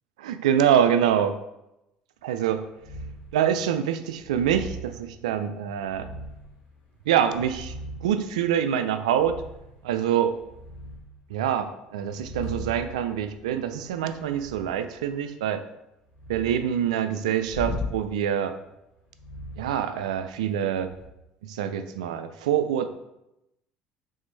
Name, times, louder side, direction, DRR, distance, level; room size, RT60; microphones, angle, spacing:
voice 1, 0.2-1.4 2.2-2.6 3.3-6.1 7.1-7.7 8.0-9.4 9.8-10.4 11.3-15.6 16.3-18.5 19.6-20.9 21.4-22.9, right 9 dB, 90° right, 10 dB, 0.3 m, -25 dB
sound 1, 2.8-3.3 4.2-4.9 5.8-6.5 7.1-8.2 9.1-9.7 10.2-11.1 12.0-14.8 16.1-16.6 17.5-17.9 19.1-20.3 20.8-21.1, left 1 dB, 40° left, 1.5 m, -38 dB
3.6 x 3.3 x 4.0 m, 0.89 s
hypercardioid pair, 75°, 4 cm